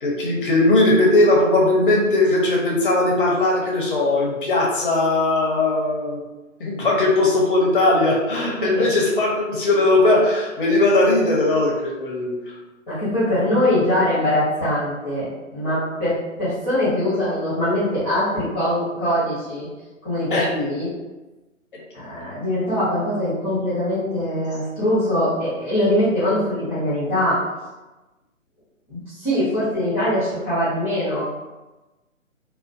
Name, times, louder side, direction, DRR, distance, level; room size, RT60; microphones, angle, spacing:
voice 1, 0.0-6.2 6.6-12.3 20.3-20.5, left 2 dB, 40° left, -3 dB, 0.6 m, -19 dB
voice 2, 12.9-19.7 20.0-20.9 21.9-27.4 28.9-31.3, left 1 dB, 5° left, -14 dB, 0.8 m, -22 dB
2.4 x 2.2 x 2.3 m, 1.1 s
figure-of-eight pair, 135°, 41 cm